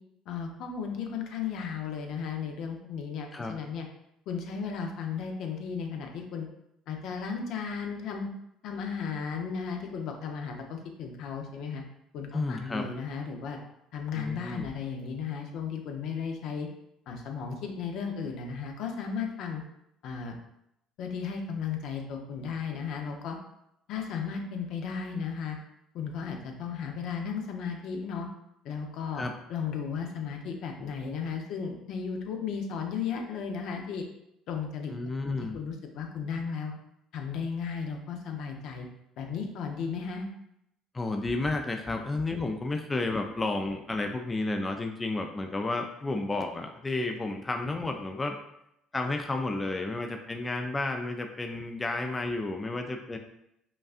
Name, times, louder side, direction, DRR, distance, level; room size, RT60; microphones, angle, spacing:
voice 1, 0.3-3.9 4.3-6.5 6.9-8.3 8.6-11.8 12.1-13.6 13.9-16.7 17.1-19.6 20.0-20.4 21.0-23.4 23.9-25.6 25.9-28.3 28.6-29.2 29.5-34.0 34.5-34.9 35.2-36.7 37.1-38.9 39.2-40.3, left 6 dB, 70° left, 3 dB, 0.6 m, -35 dB
voice 2, 12.3-12.9 14.2-14.7 29.1-29.3 34.9-35.6 40.9-48.4 48.9-53.2, left 2 dB, 20° left, 4 dB, 0.4 m, -32 dB
5.1 x 2.4 x 2.4 m, 0.80 s
supercardioid pair, 80°, 0 cm